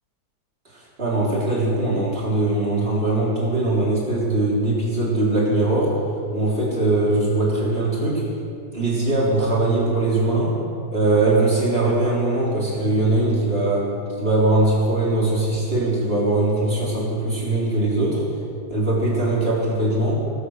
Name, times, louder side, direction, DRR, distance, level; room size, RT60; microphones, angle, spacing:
voice 1, 0.7-6.0 6.3-8.2 8.7-10.6 10.9-18.3 18.7-20.2, right 2 dB, 35° right, -6 dB, 3.9 m, -21 dB
20.5 x 8.3 x 6.5 m, 2.5 s
omnidirectional pair, 1.8 m